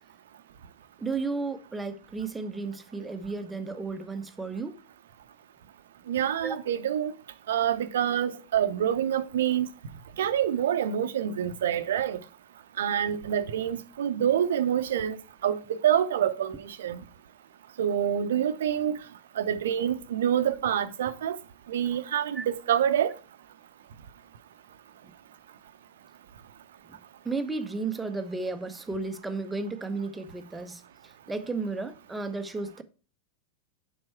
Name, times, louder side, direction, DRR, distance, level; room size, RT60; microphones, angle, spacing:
voice 1, 1.0-4.8 6.4-6.6 22.3-22.5 26.9-27.0 27.2-32.8, right 3 dB, 10° right, 0.8 m, -33 dB
voice 2, 6.1-7.1 7.5-9.7 10.2-12.2 12.8-15.2 15.4-17.0 17.8-19.0 19.4-21.4 21.7-23.1, right 9 dB, 60° right, 0.7 m, -26 dB
7.6 x 5.4 x 4.4 m
figure-of-eight pair, 90°, 0 cm